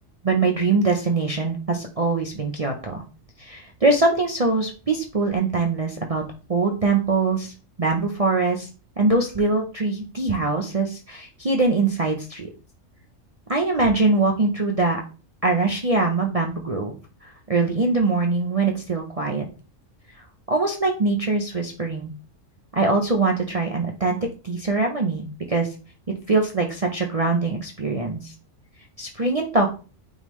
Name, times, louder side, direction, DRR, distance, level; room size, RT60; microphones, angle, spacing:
voice 1, 0.2-3.0 3.4-6.2 6.5-7.5 7.8-8.7 9.0-12.5 13.5-15.0 15.4-16.9 17.2-19.5 20.5-22.1 22.7-24.2 24.4-25.7 26.3-28.3 29.0-29.7, right 3 dB, 35° right, 1 dB, 0.7 m, -22 dB
8.8 x 3.7 x 3.1 m, 0.35 s
omnidirectional pair, 1.3 m